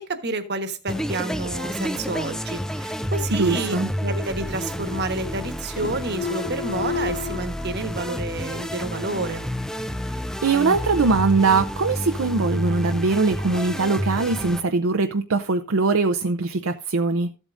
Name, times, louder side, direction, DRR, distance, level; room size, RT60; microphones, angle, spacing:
voice 1, 0.0-9.4, right 2 dB, 50° right, 1.3 m, -29 dB
sound 1, 0.9-14.6, equal, 5° left, 0.5 m, -30 dB
voice 2, 3.3-3.9 10.4-17.3, right 4 dB, 65° right, 0.6 m, -21 dB
sound 2, 4.7-5.5 5.8-7.4, left 5 dB, 70° left, 2.8 m, -33 dB
14.5 x 8.2 x 2.6 m
head